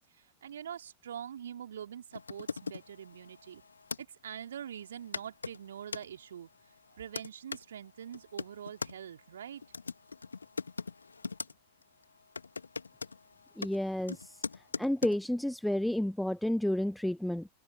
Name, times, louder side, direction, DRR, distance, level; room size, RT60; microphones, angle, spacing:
voice 1, 0.1-3.6 4.0-6.5 7.0-9.6, right 9 dB, 65° right, 4.0 m, -44 dB
sound 1, 2.1-4.0 4.8-4.9 5.1-6.1 6.7-7.6 8.1-8.9 9.6-11.5 11.8-12.0 12.4-15.2, left 4 dB, 75° left, 2.3 m, -41 dB
voice 2, 13.6-14.4 14.8-17.5, left 1 dB, ahead, 0.6 m, -31 dB
figure-of-eight pair, 90°, 0 cm